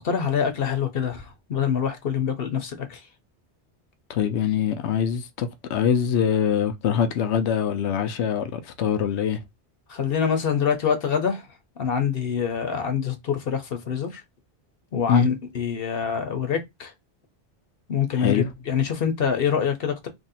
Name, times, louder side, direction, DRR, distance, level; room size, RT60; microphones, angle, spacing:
voice 1, 0.0-3.0 9.9-11.4 11.8-14.2 14.9-16.9 17.9-20.1, left 7 dB, 65° left, 0.9 m, -25 dB
voice 2, 4.1-9.4 15.1-15.3 18.1-18.5, left 8 dB, 90° left, 0.9 m, -23 dB
2.9 x 2.7 x 4.1 m
omnidirectional pair, 1.1 m